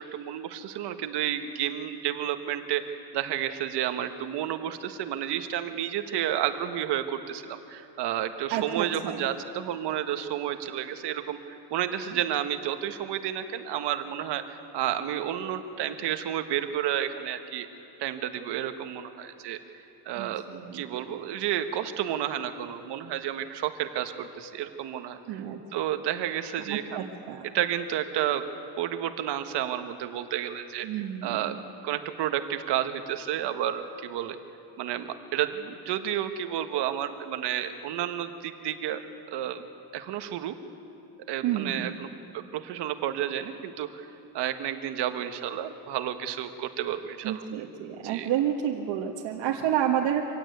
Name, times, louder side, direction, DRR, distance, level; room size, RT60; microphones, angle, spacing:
voice 1, 0.0-17.7 18.0-19.6 20.0-20.4 20.7-25.4 25.7-27.1 27.4-28.4 28.8-31.5 31.8-34.4 34.8-39.0 39.3-39.6 39.9-40.6 41.3-42.1 42.3-44.1 44.3-47.4 48.0-48.3, right 11 dB, 65° right, 8 dB, 1.5 m, -31 dB
voice 2, 8.5-9.3 20.2-20.8 25.3-25.6 26.7-27.5 30.8-31.6 41.4-41.9 47.2-50.3, right 10 dB, 85° right, -1 dB, 1.7 m, -30 dB
25.0 x 16.5 x 9.4 m, 2.8 s
cardioid pair, 155°, 43 cm